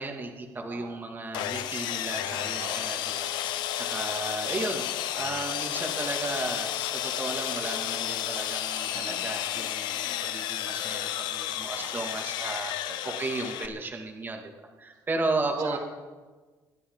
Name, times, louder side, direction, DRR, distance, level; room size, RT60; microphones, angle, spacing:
voice 1, 0.0-4.8 5.2-14.5 14.8-15.8, right 2 dB, 25° right, 1 dB, 2.4 m, -34 dB
voice 2, 0.7-1.1 2.6-3.0 4.4-4.8 8.9-9.3 11.8-12.1 12.9-13.3 14.9-15.8, right 6 dB, 80° right, 0 dB, 2.5 m, -44 dB
Sawing, 1.3-13.7, left 11 dB, 80° left, 0.8 m, -32 dB
26.5 x 11.0 x 4.0 m, 1.3 s
cardioid pair, 95°, 7 cm